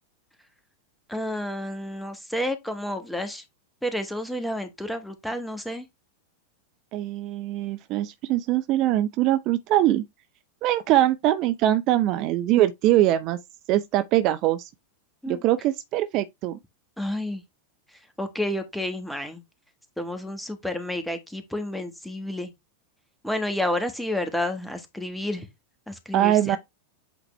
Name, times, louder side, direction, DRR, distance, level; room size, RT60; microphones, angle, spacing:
voice 1, 1.1-3.4 3.8-5.8 15.2-15.4 17.0-17.4 18.2-19.4 20.0-22.5 23.2-25.5 25.9-26.6, left 1 dB, 5° left, 1.5 m, -30 dB
voice 2, 6.9-10.0 10.6-13.4 13.7-14.7 15.3-16.6 26.1-26.6, right 13 dB, 40° right, 0.6 m, -22 dB
8.2 x 4.0 x 3.3 m
figure-of-eight pair, 90°, 0 cm